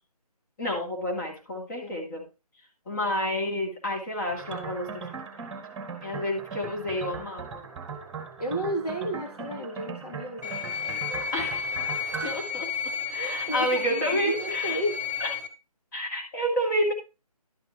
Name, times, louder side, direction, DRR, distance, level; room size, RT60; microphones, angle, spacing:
voice 1, 0.6-2.3 2.9-5.1 6.0-7.7 11.1-11.7 12.2-14.8 15.2-15.3 15.9-16.9, equal, 30° left, -1 dB, 2.7 m, -30 dB
sound 1, 4.3-12.4, right 5 dB, 10° right, 2.0 m, -39 dB
voice 2, 8.4-10.6 12.2-12.3 13.1-15.0, right 1 dB, 75° left, 0 dB, 3.1 m, -32 dB
sound 2, 10.4-15.5, left 6 dB, 25° right, 1.3 m, -32 dB
12.0 x 6.0 x 4.6 m, 0.29 s
figure-of-eight pair, 155°, 20 cm